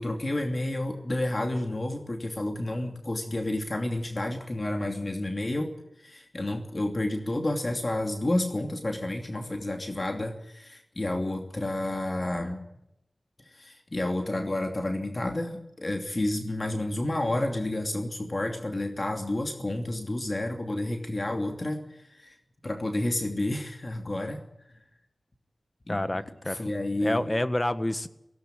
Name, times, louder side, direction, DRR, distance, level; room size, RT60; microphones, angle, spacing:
voice 1, 0.0-5.7 6.0-12.6 13.5-22.3 22.6-24.4 25.9-26.0 26.5-27.2, left 1 dB, 40° left, 4 dB, 2.8 m, -30 dB
voice 2, 25.9-26.6 27.0-28.1, left 1 dB, 25° left, 12 dB, 1.6 m, -28 dB
17.5 x 17.5 x 9.0 m, 0.84 s
wide cardioid pair, 50°, 0 cm